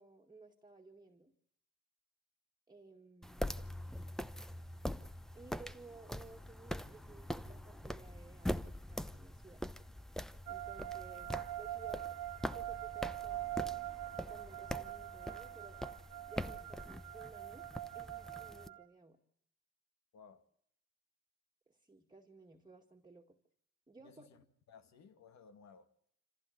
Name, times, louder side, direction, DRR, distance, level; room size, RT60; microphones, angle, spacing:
voice 1, 0.0-1.3 2.7-3.3 5.3-9.6 10.5-12.2 12.5-13.6 14.1-15.8 16.3-17.7 17.9-19.2 21.7-23.4 23.9-24.3, right 3 dB, 15° right, 2.1 m, -57 dB
sound 1, 3.2-18.7, equal, ahead, 0.8 m, -44 dB
sound 2, 10.5-18.8, right 14 dB, 85° right, 1.0 m, -44 dB
voice 2, 20.1-20.5 24.0-25.9, left 6 dB, 65° left, 2.2 m, -59 dB
26.5 x 15.0 x 8.0 m
cardioid pair, 90°, 30 cm